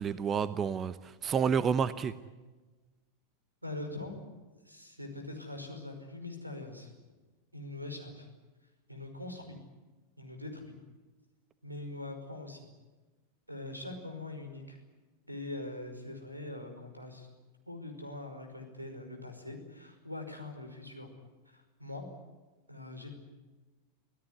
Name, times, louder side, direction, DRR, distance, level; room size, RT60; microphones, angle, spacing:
voice 1, 0.0-2.1, right 7 dB, 25° right, 16 dB, 0.9 m, -29 dB
voice 2, 3.6-4.2 4.6-6.9 7.5-8.3 8.9-9.6 10.2-10.8 11.6-12.7 13.5-14.8 15.3-17.3 17.7-21.1 21.5-22.1 22.7-23.1, left 2 dB, 90° right, 6 dB, 5.3 m, -42 dB
26.0 x 17.0 x 9.8 m, 1.2 s
figure-of-eight pair, 90°, 0 cm